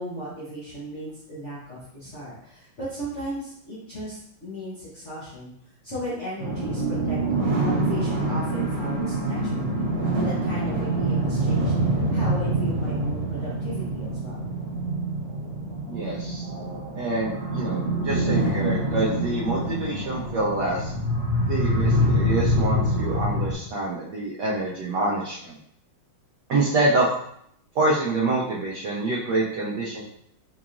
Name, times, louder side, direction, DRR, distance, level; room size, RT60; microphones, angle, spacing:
voice 1, 0.0-5.5 5.8-9.8 10.1-11.7 12.1-14.5, equal, 50° left, -9 dB, 0.9 m, -36 dB
sound 1, 6.4-23.5, right 1 dB, 55° right, 1.7 m, -25 dB
voice 2, 15.9-16.5 17.0-20.9 21.5-25.6 26.5-27.1 27.7-30.0, right 2 dB, 70° right, -5 dB, 1.0 m, -26 dB
4.7 x 2.9 x 2.4 m, 0.71 s
omnidirectional pair, 2.4 m